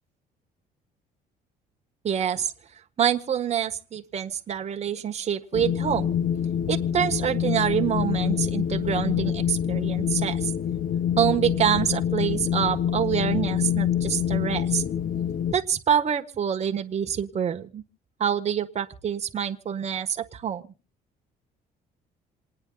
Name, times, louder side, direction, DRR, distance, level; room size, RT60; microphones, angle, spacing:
voice 1, 2.0-2.5 3.0-6.1 6.7-10.5 11.2-14.8 15.5-17.8 18.2-20.6, right 9 dB, 40° right, 5 dB, 1.5 m, -26 dB
Wind, 5.5-15.5, left 9 dB, 55° left, 0.7 m, -26 dB
27.5 x 9.8 x 4.0 m, 0.36 s
cardioid pair, 110°, 17 cm